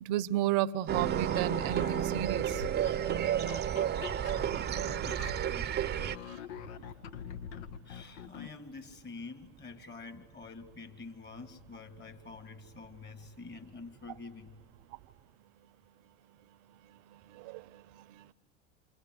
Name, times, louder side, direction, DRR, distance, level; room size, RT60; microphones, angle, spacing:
voice 1, 0.0-2.6 17.3-17.6, right 13 dB, 60° right, 0.9 m, -32 dB
sound 1, 0.9-6.2, right 10 dB, 30° right, 0.8 m, -31 dB
sound 2, 1.3-8.6, left 8 dB, 70° left, 1.2 m, -45 dB
voice 2, 5.5-5.9 7.8-14.6, left 4 dB, 30° left, 2.4 m, -47 dB
27.5 x 27.0 x 8.0 m
hypercardioid pair, 85°, 36 cm